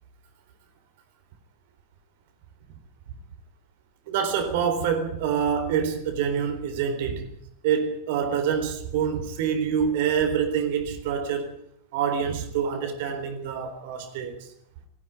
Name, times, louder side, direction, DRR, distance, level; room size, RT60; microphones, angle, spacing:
voice 1, 4.1-7.3 7.6-11.5 11.9-14.4, right 7 dB, 50° right, 3.9 m, -26 dB
18.5 x 15.0 x 9.7 m
figure-of-eight pair, 90°, 0 cm